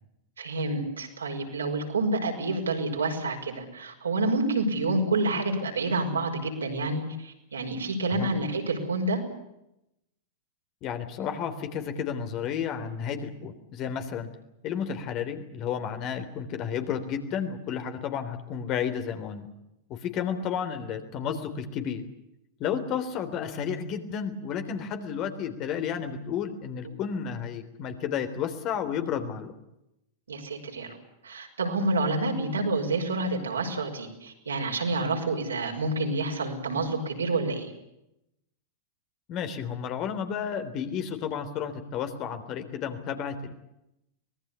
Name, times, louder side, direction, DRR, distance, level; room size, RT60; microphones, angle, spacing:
voice 1, 0.4-9.2 30.3-31.0 31.2-37.7, right 2 dB, 80° right, 2 dB, 5.7 m, -28 dB
voice 2, 10.8-14.3 14.6-19.5 19.9-22.0 22.6-29.5 39.3-43.5, left 7 dB, 40° left, 8 dB, 3.4 m, -32 dB
24.5 x 20.0 x 8.3 m, 0.85 s
figure-of-eight pair, 95°, 0 cm